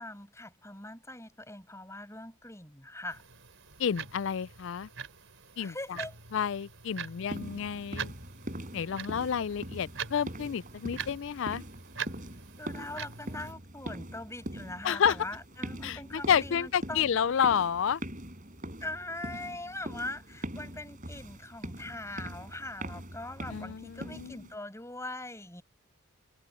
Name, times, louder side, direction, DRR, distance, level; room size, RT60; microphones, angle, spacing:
voice 1, 0.0-3.2 5.6-6.2 9.2-9.3 12.6-17.0 18.8-25.6, left 2 dB, 15° left, 6.2 m, -41 dB
sound 1, 3.1-13.5, right 6 dB, 60° right, 4.9 m, -44 dB
voice 2, 3.8-4.9 5.6-5.7 6.3-8.1 8.7-11.6 14.8-15.2 15.8-18.0 23.5-24.4, left 7 dB, 55° left, 0.4 m, -30 dB
sound 2, 7.3-24.6, right 1 dB, 35° right, 4.8 m, -42 dB
head